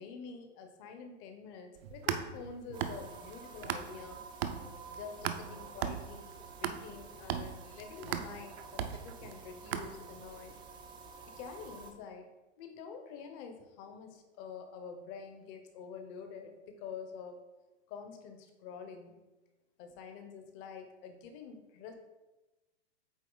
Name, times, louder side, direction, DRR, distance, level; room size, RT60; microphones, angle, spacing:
voice 1, 0.0-4.2 4.9-10.5 11.4-12.3 12.6-17.4 17.9-19.2 19.8-21.9, left 6 dB, 35° left, 6 dB, 0.9 m, -47 dB
sound 1, 1.8-4.1 4.4-10.3, right 9 dB, 60° right, 0.6 m, -38 dB
sound 2, 2.7-11.9, right 4 dB, 15° right, 0.4 m, -50 dB
8.3 x 3.0 x 3.9 m, 1.1 s
hypercardioid pair, 130°, 34 cm